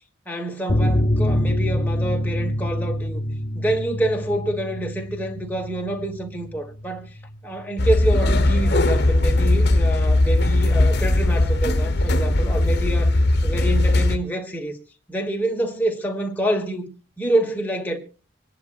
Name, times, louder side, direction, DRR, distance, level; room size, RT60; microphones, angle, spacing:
voice 1, 0.3-3.2 3.5-7.1 7.4-13.2 13.4-14.8 15.1-16.9 17.2-18.0, right 1 dB, 10° left, 1.4 m, -27 dB
sound 1, 0.7-7.8 8.0-8.2 8.5-8.6, left 1 dB, 30° left, 0.6 m, -26 dB
sound 2, 7.8-14.2, left 2 dB, 55° left, 1.0 m, -19 dB
25.0 x 10.5 x 2.4 m
head